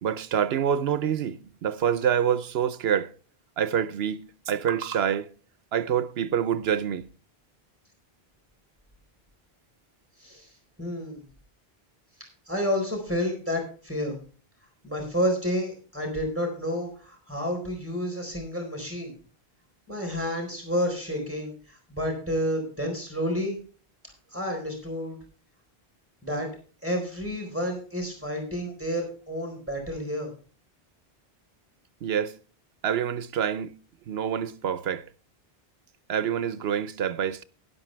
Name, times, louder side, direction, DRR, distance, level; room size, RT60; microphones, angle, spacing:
voice 1, 0.0-3.1 3.6-5.3 5.7-7.1 32.0-32.4 32.8-33.7 34.1-35.0 36.1-37.4, right 8 dB, 80° right, 1.0 m, -26 dB
voice 2, 10.2-10.5 10.8-11.2 12.5-14.2 14.8-19.1 19.9-23.6 24.3-25.2 26.2-26.5 26.8-30.3, equal, 15° right, 4.2 m, -30 dB
12.5 x 11.5 x 3.3 m
omnidirectional pair, 1.0 m